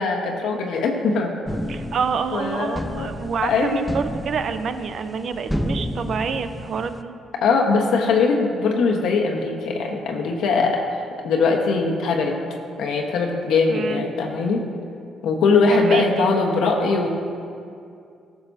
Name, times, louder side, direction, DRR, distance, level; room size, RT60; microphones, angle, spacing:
voice 1, 0.0-1.4 2.3-3.1 3.4-3.8 7.4-12.4 12.8-14.6 15.2-17.1, left 4 dB, 80° left, 1 dB, 1.2 m, -21 dB
sound 1, 1.4-7.0, equal, 5° left, 0.5 m, -31 dB
voice 2, 1.7-7.1 13.7-14.0 15.7-16.3, right 6 dB, 60° right, 9 dB, 0.6 m, -27 dB
17.0 x 7.0 x 2.8 m, 2.4 s
cardioid pair, 90°, 0 cm